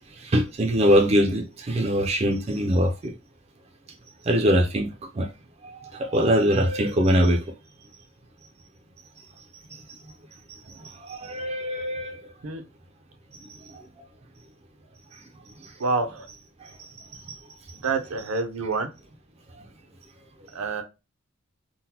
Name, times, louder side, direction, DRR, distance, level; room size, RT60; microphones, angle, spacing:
voice 1, 0.2-3.1 4.3-4.9 5.2-5.3 5.9-7.4 11.1-12.2, equal, 30° right, 0.4 m, -22 dB
voice 2, 15.8-16.3 17.8-18.9 20.5-20.8, right 4 dB, 75° right, 0.6 m, -27 dB
3.8 x 2.1 x 2.8 m
head